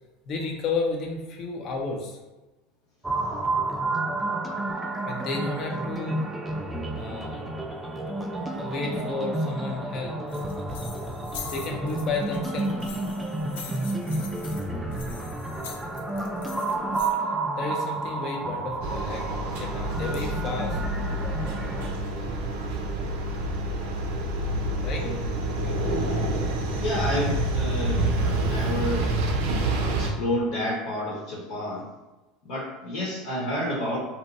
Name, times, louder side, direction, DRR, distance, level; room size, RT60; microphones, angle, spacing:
voice 1, 0.3-2.2 5.1-6.2 6.9-7.5 8.6-10.2 11.5-13.1 17.6-20.8 24.8-25.1, left 3 dB, 45° left, 1 dB, 0.6 m, -32 dB
sound 1, 3.0-21.9, right 2 dB, 10° right, 0.3 m, -31 dB
sound 2, 10.3-17.1, left 5 dB, 85° left, 0.4 m, -43 dB
sound 3, 18.8-30.1, right 1 dB, 75° right, 0.5 m, -27 dB
voice 2, 26.8-29.1 30.0-31.9 32.4-34.0, left 1 dB, 70° left, -4 dB, 1.0 m, -30 dB
2.7 x 2.1 x 4.0 m, 1.1 s
supercardioid pair, 115°, 0 cm